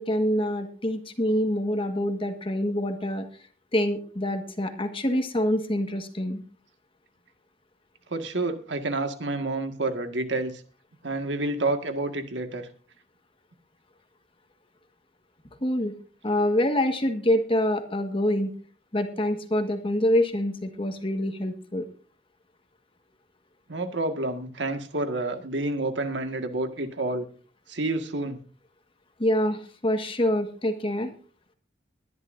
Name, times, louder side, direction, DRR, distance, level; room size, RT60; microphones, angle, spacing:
voice 1, 0.0-3.2 3.7-6.4 15.6-15.9 16.2-18.5 18.9-21.9 29.2-31.1, left 1 dB, 30° left, 6 dB, 1.6 m, -26 dB
voice 2, 8.1-10.5 11.0-12.7 23.7-27.3 27.7-28.4, right 2 dB, 75° right, 6 dB, 1.9 m, -29 dB
22.0 x 11.0 x 2.7 m, 0.39 s
head